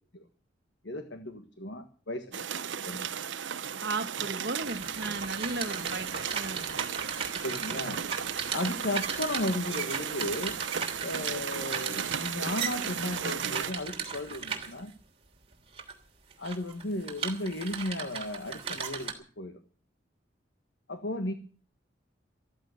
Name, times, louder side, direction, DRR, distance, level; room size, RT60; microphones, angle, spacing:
voice 1, 0.8-2.5 2.8-3.1 7.3-8.0 8.5-10.5 11.0-14.9 16.4-19.6 20.9-21.3, left 1 dB, 75° left, 1.5 m, -35 dB
sound 1, 2.3-13.7, right 8 dB, 80° right, 0.8 m, -35 dB
voice 2, 3.8-6.7, right 2 dB, 60° right, 1.6 m, -35 dB
sound 2, 4.6-14.9 15.5-15.9 16.3-19.1, right 6 dB, 30° right, 3.1 m, -37 dB
14.5 x 14.0 x 6.6 m
head